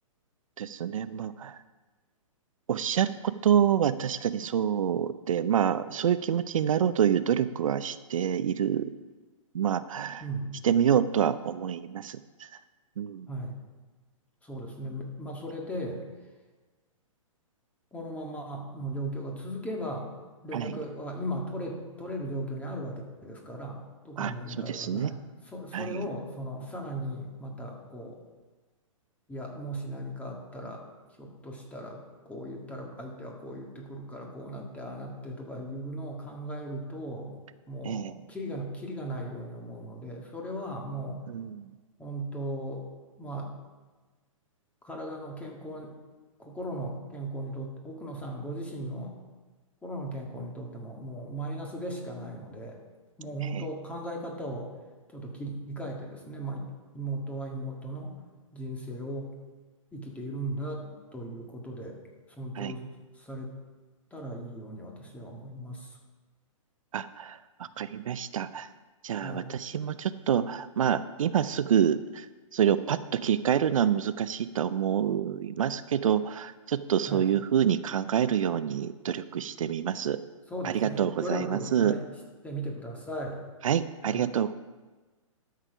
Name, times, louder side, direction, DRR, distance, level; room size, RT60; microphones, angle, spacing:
voice 1, 0.6-1.6 2.7-8.9 9.5-10.2 10.6-12.5 13.0-13.3 20.5-20.8 24.2-24.3 24.7-25.1 25.7-26.0 37.8-38.1 41.3-41.7 53.5-53.6 62.6-62.7 66.9-68.7 69.0-72.3 72.5-80.2 80.6-81.9 83.6-84.5, right 9 dB, 70° right, 13 dB, 0.5 m, -27 dB
voice 2, 10.2-10.5 13.3-13.6 14.4-16.0 17.9-20.1 20.4-25.2 25.4-28.2 29.3-30.8 31.2-37.4 37.7-41.2 42.0-42.8 43.2-43.5 44.8-45.9 46.4-49.1 49.8-52.8 53.2-54.7 55.1-56.7 56.9-58.2 58.5-59.3 59.9-62.0 62.3-62.9 63.2-63.5 64.1-66.0 69.2-69.5 77.1-77.3 80.5-82.1 82.4-83.4 84.1-84.3, right 1 dB, 10° left, 0 dB, 1.8 m, -37 dB
12.5 x 6.6 x 5.0 m, 1.3 s
hypercardioid pair, 135°, 17 cm